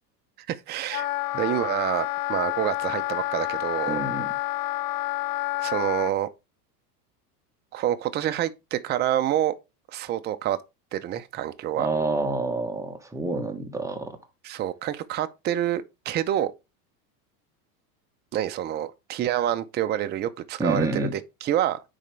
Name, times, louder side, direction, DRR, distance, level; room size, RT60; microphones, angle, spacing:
voice 1, 0.5-1.1 1.3-4.0 5.6-6.3 7.7-9.5 9.9-10.6 10.9-11.9 14.4-16.5 18.3-21.8, right 12 dB, 25° right, 0.5 m, -27 dB
Wind instrument woodwind instrument, 0.9-6.1, left 16 dB, 60° left, 0.7 m, -29 dB
voice 2, 3.9-4.3 11.8-14.2 20.6-21.1, right 2 dB, 5° right, 1.3 m, -28 dB
9.8 x 4.2 x 3.3 m
supercardioid pair, 115°, 47 cm